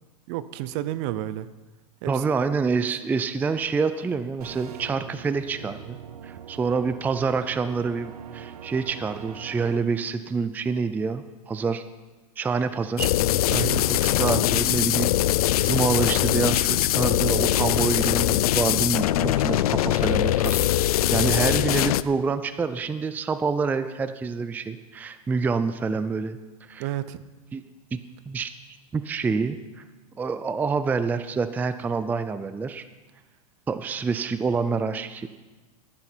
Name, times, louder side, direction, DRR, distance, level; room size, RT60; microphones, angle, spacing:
voice 1, 0.3-1.5 2.0-2.2 13.5-13.9 26.8-27.2, right 14 dB, 50° right, 15 dB, 0.7 m, -30 dB
voice 2, 2.1-6.0 6.2-11.8 12.4-13.1 13.9-26.4 26.7-26.9 27.5-27.6 28.3-28.5 28.9-29.8 30.2-32.8 33.7-35.4, right 5 dB, 10° right, 11 dB, 0.4 m, -27 dB
sound 1, 4.4-9.8, right 9 dB, 85° right, 0.8 m, -42 dB
sound 2, 13.0-22.0, left 14 dB, 75° left, 0.5 m, -22 dB
16.0 x 9.8 x 4.5 m, 1.2 s
hypercardioid pair, 130°, 19 cm